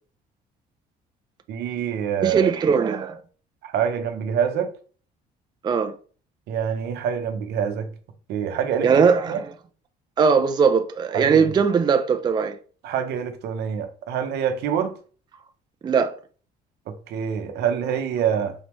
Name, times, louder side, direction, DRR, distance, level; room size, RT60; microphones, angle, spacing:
voice 1, 1.5-2.5 3.6-4.7 6.5-7.9 8.3-8.9 9.3-9.4 11.1-11.4 12.8-14.9 17.1-18.5, right 8 dB, 75° right, 0.7 m, -25 dB
voice 2, 2.2-3.2 5.6-5.9 8.8-9.4 10.2-12.6 15.8-16.1, right 6 dB, 25° right, 0.4 m, -20 dB
4.0 x 3.4 x 3.0 m
cardioid pair, 110°, 17 cm